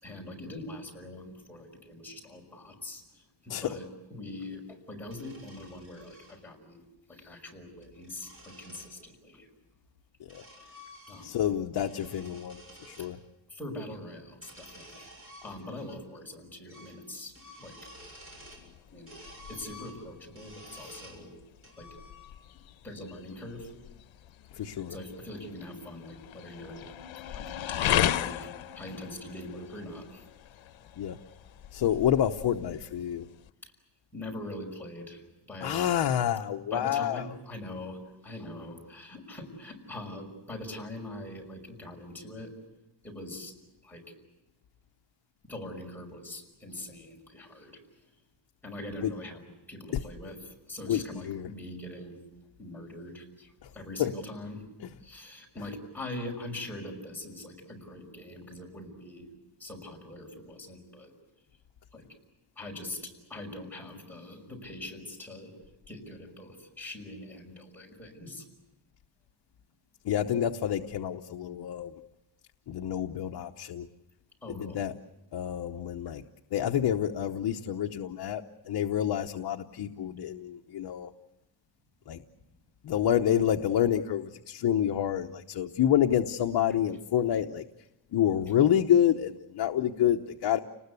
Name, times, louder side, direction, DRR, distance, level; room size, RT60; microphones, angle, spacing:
voice 1, 0.0-6.8 7.1-9.5 11.1-11.4 13.5-15.1 15.4-17.3 17.6-17.9 18.9-19.1 19.5-21.3 21.8-21.9 22.8-23.7 24.9-26.8 27.3-27.4 27.7-28.5 28.8-30.3 34.1-35.2 35.5-35.9 36.7-42.5 43.0-43.5 43.8-44.0 45.5-47.8 48.6-52.2 52.6-54.6 55.0-59.3 59.6-61.1 61.9-62.0 62.6-65.5 65.9-68.4 74.4-74.8, left 1 dB, 5° left, -1 dB, 5.8 m, -42 dB
sound 1, 5.0-6.4 7.6-8.9 9.8-11.5 11.7-13.1 14.3-16.0 16.2-16.3 16.7-17.0 17.3-18.7 19.1-21.2 21.6-22.6, equal, 30° right, 7.0 m, -51 dB
voice 2, 11.2-12.6 12.9-13.2 24.5-25.0 31.0-31.2 31.7-33.2 35.6-37.2 49.0-49.1 50.9-51.5 54.0-54.1 70.0-71.9 72.7-73.9 74.5-74.9 75.3-76.2 76.5-81.1 82.1-82.2 82.8-87.6 88.1-90.6, left 10 dB, 55° left, 5 dB, 0.9 m, -28 dB
sound 2, 18.0-33.5, left 11 dB, 75° left, 1.0 m, -36 dB
30.0 x 20.0 x 8.3 m, 0.98 s
wide cardioid pair, 170°, 46 cm